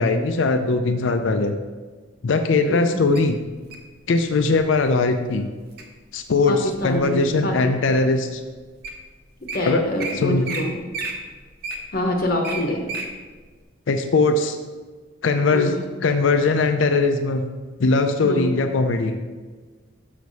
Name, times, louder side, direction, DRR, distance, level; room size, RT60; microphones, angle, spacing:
voice 1, 0.0-1.5 2.2-3.4 4.1-5.5 6.1-8.4 9.7-9.8 10.2-10.4 13.9-14.6 15.2-15.7 16.0-17.4 17.8-19.2, left 3 dB, 70° left, 7 dB, 0.5 m, -20 dB
voice 2, 2.7-3.0 6.5-8.1 9.5-10.8 11.9-12.8 15.5-15.8 18.2-18.5, left 1 dB, 45° left, 1 dB, 0.9 m, -26 dB
Wild animals, 3.2-3.9 4.6-4.9 5.4-5.8 6.4-7.3 7.9-8.0 8.6-8.7 8.8-9.0 9.3-9.6 10.0-10.1 10.4-10.6 10.9-13.1 13.5-13.6, right 4 dB, 50° right, 0.9 m, -32 dB
6.4 x 5.8 x 4.0 m, 1.4 s
head